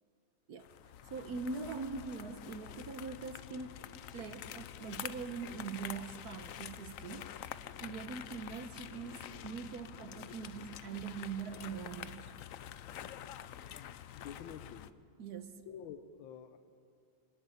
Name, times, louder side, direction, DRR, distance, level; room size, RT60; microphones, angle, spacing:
sound 1, 0.6-14.9, left 10 dB, 70° left, 0.8 m, -47 dB
voice 1, 1.0-3.8 4.1-7.3 7.8-12.3 15.2-15.7, right 5 dB, 60° right, 10 dB, 1.3 m, -42 dB
voice 2, 13.8-14.9 15.7-16.6, left 8 dB, 85° left, 8 dB, 1.5 m, -49 dB
24.0 x 12.0 x 9.8 m, 2.4 s
omnidirectional pair, 2.1 m